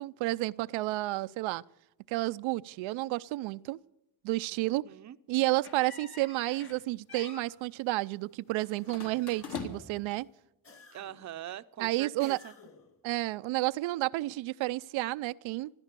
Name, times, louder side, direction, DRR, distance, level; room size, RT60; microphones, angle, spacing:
voice 1, 0.0-1.6 2.1-3.8 4.2-4.8 5.3-10.3 11.8-12.4 13.0-15.7, right 19 dB, 90° right, 0.6 m, -31 dB
voice 2, 4.6-5.2 10.9-12.5, right 11 dB, 40° right, 0.6 m, -43 dB
sound 1, 5.6-6.8 7.1-7.5 8.9-10.1, left 5 dB, 55° left, 2.8 m, -43 dB
sound 2, 8.6-9.8 10.6-11.4 12.2-13.0, left 4 dB, 30° left, 2.1 m, -57 dB
16.0 x 13.0 x 6.7 m
cardioid pair, 110°, 45 cm